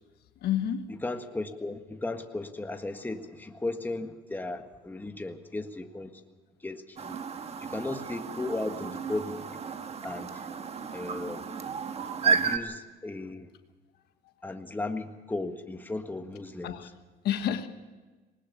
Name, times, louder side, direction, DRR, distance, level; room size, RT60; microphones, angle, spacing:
voice 1, 0.4-0.9 7.3-7.4 10.6-11.0 11.7-11.8 14.2-14.3 16.6-16.9 17.2-17.7, left 10 dB, 70° left, 8 dB, 1.4 m, -31 dB
voice 2, 1.0-6.1 6.6-7.2 7.6-9.4 10.0-10.5 10.9-11.4 12.2-13.5 14.4-16.8, left 2 dB, 10° left, 5 dB, 1.6 m, -35 dB
Chirp tweet, 7.0-12.6, right 5 dB, 40° right, 1.4 m, -32 dB
20.0 x 19.5 x 6.8 m, 1.3 s
cardioid pair, 110°, 17 cm